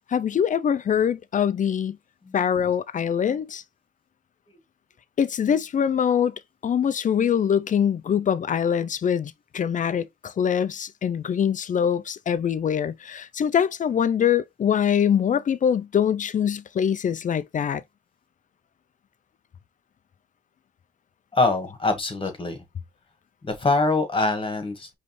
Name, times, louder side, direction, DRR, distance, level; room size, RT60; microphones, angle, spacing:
voice 1, 0.1-2.0 2.3-3.6 5.2-6.3 6.6-17.8, left 8 dB, 50° left, 0.5 m, -23 dB
voice 2, 21.3-22.6 23.4-24.9, left 3 dB, 30° left, 1.8 m, -24 dB
5.1 x 3.3 x 3.2 m
cardioid pair, 100°, 17 cm